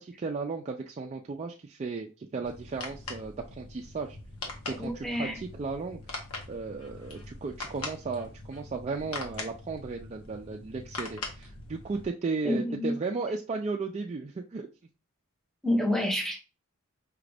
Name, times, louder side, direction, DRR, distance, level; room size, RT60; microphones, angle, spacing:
voice 1, 0.0-4.2 4.7-6.0 6.5-14.7, right 4 dB, 30° right, 0.3 m, -35 dB
sound 1, 2.4-12.1, left 3 dB, 75° left, 1.1 m, -42 dB
voice 2, 4.7-5.4 12.4-13.0 15.6-16.4, left 1 dB, ahead, 0.7 m, -28 dB
5.0 x 2.4 x 3.3 m
head